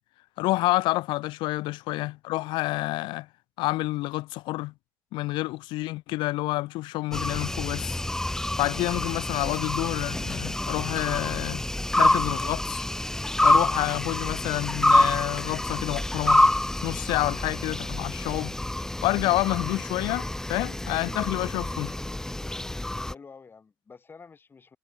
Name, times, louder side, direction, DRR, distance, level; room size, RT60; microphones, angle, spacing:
voice 1, 0.4-3.3 3.6-4.7 5.1-8.0 8.6-11.6 12.0-12.8 13.4-16.4 16.8-18.6 19.0-21.9, left 20 dB, 70° left, 0.5 m, -28 dB
sound 1, 7.1-23.1, left 1 dB, 5° left, 0.7 m, -27 dB
voice 2, 8.5-8.9 16.8-17.1 23.0-24.8, left 5 dB, 25° left, 5.9 m, -50 dB
cardioid pair, 120°, 8 cm